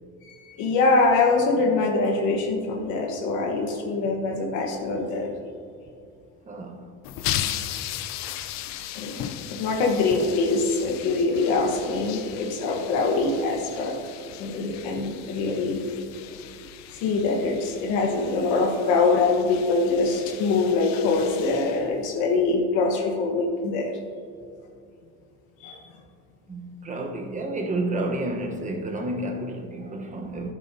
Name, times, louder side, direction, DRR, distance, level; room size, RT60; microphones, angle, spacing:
voice 1, 0.3-5.3 8.7-13.9 14.4-15.8 16.2-16.4 16.9-24.0 25.6-25.8, left 3 dB, 75° left, 1.3 m, -24 dB
voice 2, 6.5-6.9 26.5-30.5, right 2 dB, 25° right, 1.0 m, -30 dB
sound 1, 7.0-22.4, left 11 dB, 60° left, 0.7 m, -37 dB
11.5 x 11.0 x 2.8 m
cardioid pair, 120°, 31 cm